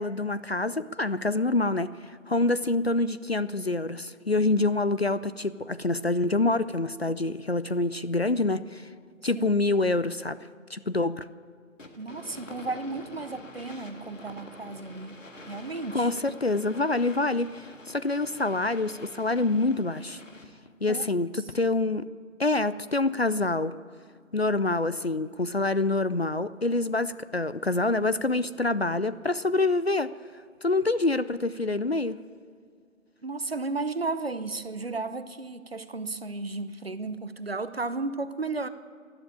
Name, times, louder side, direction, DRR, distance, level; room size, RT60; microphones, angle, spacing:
voice 1, 0.0-8.9 9.2-10.4 10.7-11.3 15.9-20.2 20.8-22.1 22.4-23.7 24.3-30.1 30.6-32.2, left 2 dB, 50° left, 15 dB, 0.4 m, -26 dB
sound 1, 11.8-20.7, left 2 dB, 70° left, 1.8 m, -47 dB
voice 2, 12.0-15.2 15.5-16.1 20.9-21.0 33.2-38.7, right 3 dB, 45° right, 12 dB, 0.8 m, -34 dB
12.5 x 12.0 x 8.5 m, 2.1 s
figure-of-eight pair, 165°, 40 cm